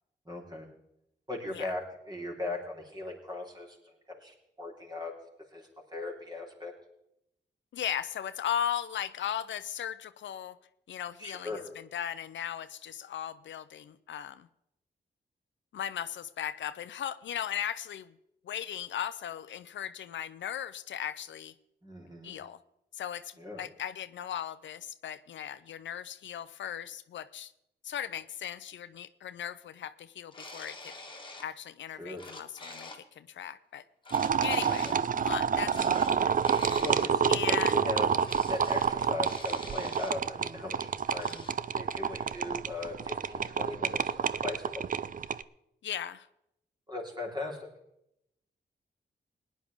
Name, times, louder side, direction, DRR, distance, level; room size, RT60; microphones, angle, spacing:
voice 1, 0.3-0.7 1.3-5.1 5.5-6.7 11.2-11.6 21.8-22.4 23.4-23.6 32.0-32.2 34.6-35.0 36.8-38.2 38.5-41.5 41.7-44.9 46.9-47.7, left 2 dB, 20° right, -1 dB, 4.0 m, -39 dB
voice 2, 7.7-10.6 10.9-14.5 15.7-18.1 18.4-21.5 22.2-22.6 23.0-27.5 27.8-30.9 31.4-33.8 34.4-34.9 35.2-36.4 37.3-37.8 45.8-46.3, left 10 dB, 85° left, 14 dB, 0.5 m, -37 dB
sound 1, 30.3-31.5 31.9-33.0 34.0-35.0 35.6-37.2 38.2-38.9 39.2-40.1 41.1-41.5, left 2 dB, 25° left, 1.8 m, -46 dB
sound 2, 34.1-45.4, right 7 dB, 45° right, 0.4 m, -28 dB
18.5 x 10.5 x 3.6 m, 0.82 s
cardioid pair, 60°, 19 cm